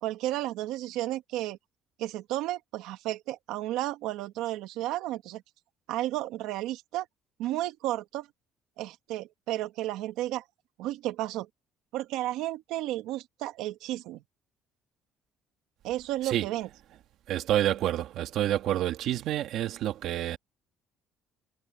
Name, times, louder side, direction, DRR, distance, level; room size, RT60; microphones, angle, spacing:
voice 1, 0.0-1.6 2.0-5.4 5.9-7.1 7.4-8.3 8.8-10.4 10.8-11.5 11.9-14.2 15.8-16.7, right 15 dB, 85° right, 1.6 m, -32 dB
voice 2, 17.3-20.4, right 12 dB, 65° right, 1.7 m, -28 dB
cardioid pair, 150°, 0 cm